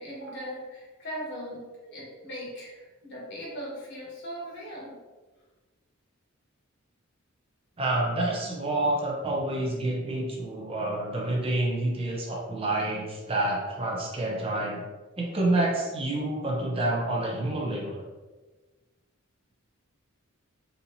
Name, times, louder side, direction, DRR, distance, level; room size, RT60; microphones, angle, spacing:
voice 1, 0.0-4.9, equal, 55° left, -5 dB, 1.3 m, -39 dB
voice 2, 7.8-14.8 15.2-18.0, right 2 dB, 25° right, -2 dB, 0.6 m, -28 dB
4.1 x 2.8 x 2.7 m, 1.2 s
head